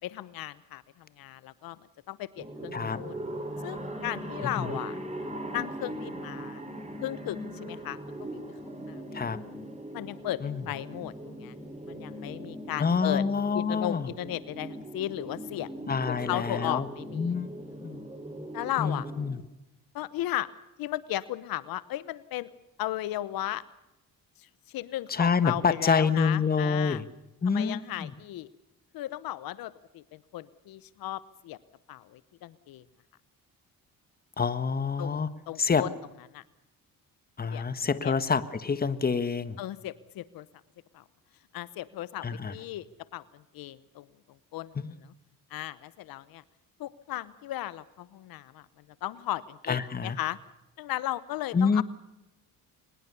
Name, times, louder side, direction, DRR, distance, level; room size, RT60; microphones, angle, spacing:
voice 1, 0.0-1.8 2.1-3.2 3.6-4.9 5.5-6.6 7.0-8.4 8.7-9.0 9.9-11.5 11.9-13.2 13.5-17.3 18.5-19.1 19.9-20.5 20.8-22.5 22.8-23.6 24.4-27.0 27.5-28.5 28.9-31.6 31.9-32.8 35.0-35.9 36.3-36.4 37.5-37.6 38.0-38.1 39.6-40.5 40.9-41.0 41.5-42.9 43.1-44.1 44.5-44.8 45.5-46.4 46.8-48.7 49.0-50.4 50.8-51.8, left 14 dB, 80° left, 17 dB, 1.0 m, -36 dB
sound 1, 2.4-19.3, right 1 dB, 20° right, 5.9 m, -40 dB
voice 2, 4.4-4.8 9.1-9.4 10.4-10.6 12.8-14.1 15.9-16.9 17.1-17.5 17.8-18.1 18.8-19.4 25.1-27.1 27.4-28.1 34.4-35.3 35.6-35.9 37.4-39.6 42.2-42.6 44.7-44.9 49.7-50.2 51.5-51.8, left 5 dB, 25° left, 13 dB, 1.5 m, -27 dB
24.0 x 21.0 x 7.0 m, 0.91 s
cardioid pair, 105°, 35 cm